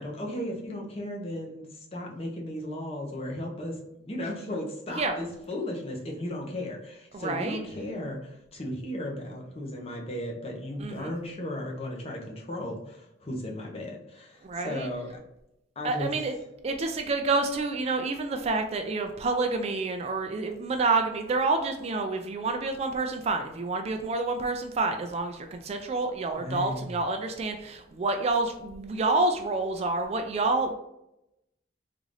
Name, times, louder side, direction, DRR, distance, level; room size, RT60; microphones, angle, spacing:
voice 1, 0.0-15.2 15.8-16.2 26.4-27.0, left 1 dB, 35° left, -1 dB, 0.8 m, -35 dB
voice 2, 7.1-7.6 10.8-11.1 14.4-14.9 15.8-16.3 16.6-30.7, right 3 dB, 35° right, 5 dB, 0.3 m, -28 dB
3.7 x 2.5 x 3.2 m, 0.84 s
head